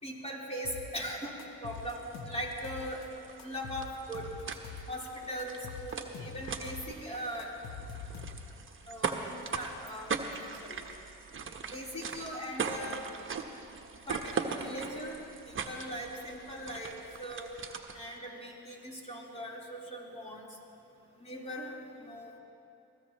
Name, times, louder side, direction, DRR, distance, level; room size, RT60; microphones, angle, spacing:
voice 1, 0.0-1.3 1.6-3.0 3.4-4.3 4.9-7.5 8.9-10.1 10.6-10.8 11.7-13.0 14.1-15.2 15.5-17.5 17.9-20.5 21.2-22.4, equal, 20° left, -4 dB, 4.0 m, -40 dB
sound 1, 0.6-1.1 1.4-3.1 3.4-5.1 5.4-6.9 7.1-8.7, left 5 dB, 85° left, 1.2 m, -45 dB
sound 2, 1.7-18.2, right 5 dB, 40° right, 1.2 m, -40 dB
23.5 x 16.0 x 3.1 m, 2.6 s
supercardioid pair, 70°, 33 cm